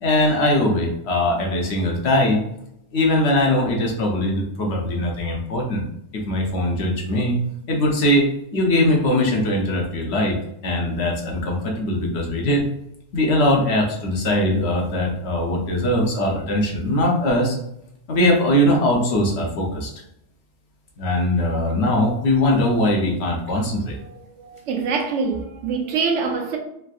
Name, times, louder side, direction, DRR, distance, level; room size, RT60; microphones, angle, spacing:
voice 1, 0.0-2.4 2.9-5.8 6.1-7.4 7.7-10.4 10.6-12.7 13.1-17.6 18.1-19.9 21.0-24.0, left 1 dB, 70° left, 1.0 m, -21 dB
voice 2, 24.0-26.6, right 5 dB, 85° right, 0.9 m, -25 dB
3.4 x 2.6 x 2.3 m
omnidirectional pair, 1.2 m